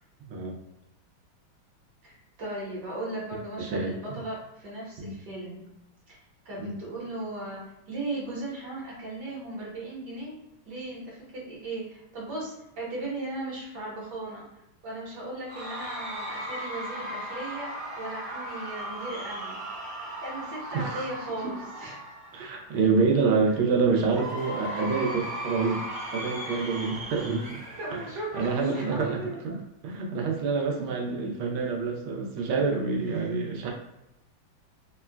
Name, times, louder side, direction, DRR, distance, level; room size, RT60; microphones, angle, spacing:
voice 1, 2.0-5.7 6.1-6.2 6.4-10.4 10.7-14.5 14.8-19.6 20.2-22.0 26.7-26.9 27.7-29.6 30.3-30.4 33.2-33.3, right 2 dB, 60° right, -5 dB, 1.4 m, -37 dB
voice 2, 3.6-3.9 5.0-5.1 6.6-6.7 20.7-21.1 21.4-21.5 22.3-25.9 26.1-27.6 27.9-28.0 28.3-33.7, right 4 dB, 85° right, 1 dB, 1.4 m, -27 dB
Cheering / Crowd, 15.5-22.8 24.0-28.8, equal, 40° right, 0.9 m, -37 dB
3.7 x 2.2 x 2.2 m, 0.91 s
omnidirectional pair, 2.2 m